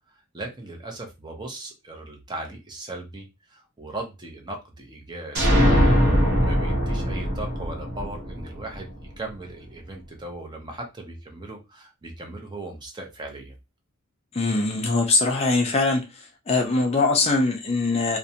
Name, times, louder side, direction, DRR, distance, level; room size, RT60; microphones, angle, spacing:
voice 1, 0.3-5.8 6.1-13.5, right 2 dB, 20° right, 0.5 m, -38 dB
sound 1, 5.3-9.0, equal, 50° right, 0.8 m, -21 dB
voice 2, 14.3-16.0 16.5-18.2, left 3 dB, 30° left, 0.3 m, -22 dB
2.5 x 2.1 x 2.7 m
head